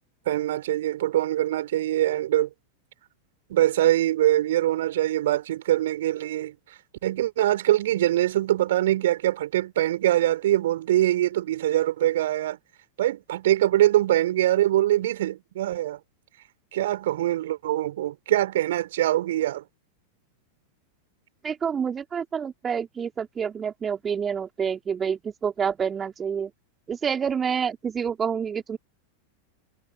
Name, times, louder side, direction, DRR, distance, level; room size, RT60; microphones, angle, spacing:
voice 1, 0.3-2.5 3.5-6.5 7.0-12.6 13.0-16.0 16.7-19.6, right 13 dB, 55° right, 6.3 m, -23 dB
voice 2, 21.4-26.5 26.9-28.8, right 7 dB, 20° right, 3.5 m, -28 dB
figure-of-eight pair, 90°, 0 cm